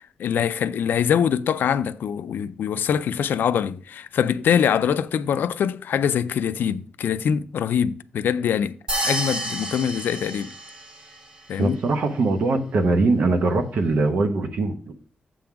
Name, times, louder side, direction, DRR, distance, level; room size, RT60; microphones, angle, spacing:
voice 1, 0.2-8.8 9.0-10.5 11.5-11.8, left 8 dB, 70° left, 0.4 m, -23 dB
sound 1, 8.9-11.2, right 1 dB, 30° right, 1.2 m, -29 dB
voice 2, 11.6-14.9, right 3 dB, 55° right, 0.8 m, -22 dB
7.7 x 3.7 x 5.8 m
wide cardioid pair, 180°, 3 cm